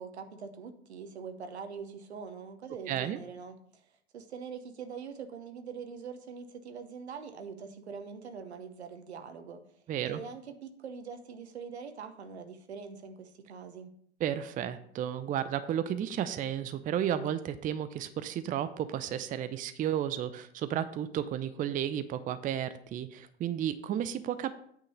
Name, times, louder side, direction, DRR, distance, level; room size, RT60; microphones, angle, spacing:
voice 1, 0.0-3.8 4.1-13.9, right 6 dB, 80° right, 7 dB, 1.0 m, -43 dB
voice 2, 2.9-3.2 9.9-10.2 14.2-24.5, right 10 dB, 25° right, 12 dB, 0.5 m, -33 dB
8.7 x 3.8 x 6.5 m, 0.66 s
figure-of-eight pair, 80°, 32 cm